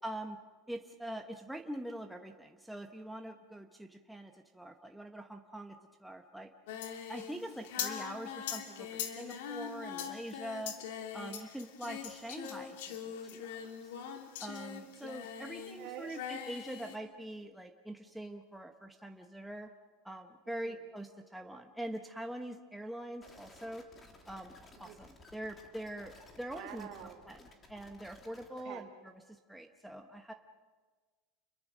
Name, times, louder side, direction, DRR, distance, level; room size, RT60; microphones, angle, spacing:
voice 1, 0.0-0.4 0.7-6.5 7.1-10.7 11.1-13.9 14.4-19.7 20.0-23.8 24.3-26.9 27.3-28.9 29.3-30.3, right 1 dB, ahead, 3 dB, 1.0 m, -44 dB
Singing, 6.7-15.8 16.1-17.0, left 8 dB, 75° left, 2.6 m, -42 dB
voice 2, 15.8-16.2 20.5-20.8 24.7-25.0 26.5-27.2 28.5-28.9, right 11 dB, 55° right, 4 dB, 2.7 m, -48 dB
sound 1, 23.2-28.6, left 3 dB, 20° left, 2.8 m, -57 dB
29.0 x 22.0 x 6.3 m, 1.4 s
supercardioid pair, 155°, 0 cm